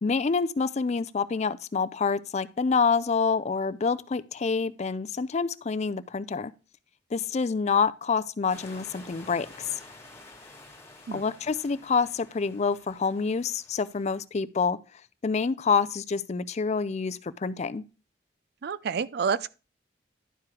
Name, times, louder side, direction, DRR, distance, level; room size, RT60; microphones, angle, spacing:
voice 1, 0.0-6.5 7.1-9.5 11.1-14.8 15.2-17.8, left 5 dB, 40° left, 0.4 m, -27 dB
sound 1, 8.5-14.2, left 2 dB, 15° left, 2.1 m, -50 dB
voice 2, 18.6-19.5, right 6 dB, 60° right, 0.4 m, -28 dB
11.0 x 4.8 x 4.7 m
head